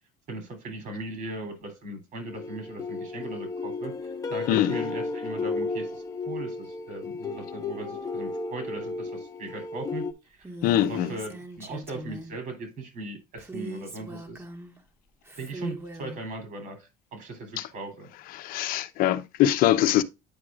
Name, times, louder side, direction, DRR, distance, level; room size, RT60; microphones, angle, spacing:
voice 1, 0.3-10.5 10.9-14.4 15.3-18.1, right 2 dB, 55° right, 3.2 m, -39 dB
sound 1, 2.3-10.1, left 3 dB, 20° left, 1.1 m, -34 dB
voice 2, 4.5-4.8 10.6-11.1 17.6-17.7 18.3-20.0, left 13 dB, 60° left, 0.7 m, -23 dB
Female speech woman speaking, 10.4-12.4 13.4-14.8 15.2-16.2, right 2 dB, 15° right, 1.4 m, -40 dB
9.4 x 4.8 x 2.4 m
cardioid pair, 115°, 16 cm